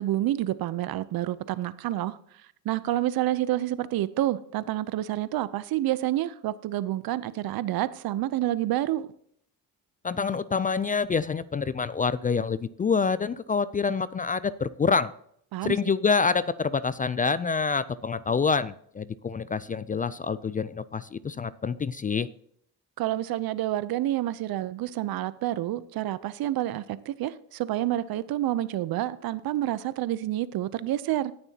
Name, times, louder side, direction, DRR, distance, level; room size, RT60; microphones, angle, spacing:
voice 1, 0.0-2.2 2.6-9.1 15.5-15.8 23.0-31.3, right 14 dB, 65° right, 0.7 m, -28 dB
voice 2, 10.0-15.1 15.6-22.3, left 5 dB, 25° left, 0.3 m, -27 dB
17.5 x 6.9 x 2.8 m
cardioid pair, 85°, 39 cm